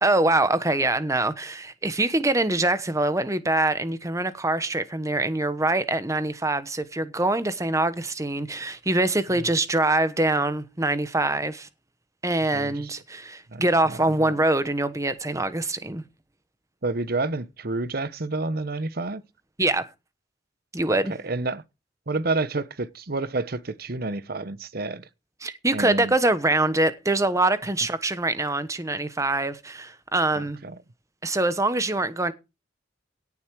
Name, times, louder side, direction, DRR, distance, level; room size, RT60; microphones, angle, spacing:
voice 1, 0.0-11.7 12.2-16.0 19.6-19.9 20.7-21.1 25.4-30.6 31.2-32.3, right 2 dB, 15° right, 1.1 m, -24 dB
voice 2, 12.5-12.9 13.5-14.3 16.8-19.2 20.9-21.6 22.1-25.1 25.7-26.1 30.4-30.8, right 3 dB, 55° right, 1.0 m, -30 dB
17.5 x 7.2 x 4.7 m
head